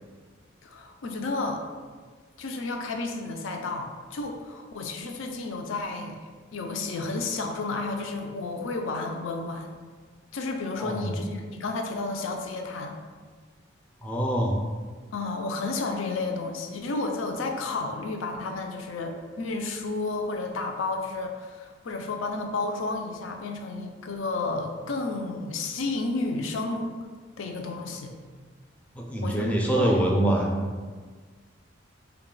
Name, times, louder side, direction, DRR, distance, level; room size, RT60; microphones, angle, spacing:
voice 1, 0.6-1.6 2.4-6.2 6.5-9.7 10.3-13.0 15.1-26.9 27.4-28.1 29.2-30.0, left 3 dB, 80° left, 4 dB, 0.4 m, -31 dB
voice 2, 14.0-14.6 28.9-30.7, right 1 dB, 5° left, -1 dB, 0.4 m, -24 dB
3.8 x 2.3 x 3.7 m, 1.5 s
head